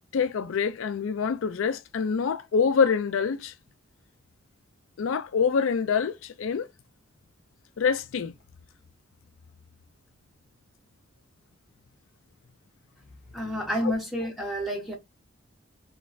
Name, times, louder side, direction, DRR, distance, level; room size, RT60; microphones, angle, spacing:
voice 1, 0.1-3.5 5.0-6.7 7.8-8.3 13.8-13.9, left 6 dB, 80° left, 0.4 m, -26 dB
voice 2, 13.3-14.9, equal, ahead, 1.0 m, -29 dB
3.2 x 3.1 x 2.5 m
head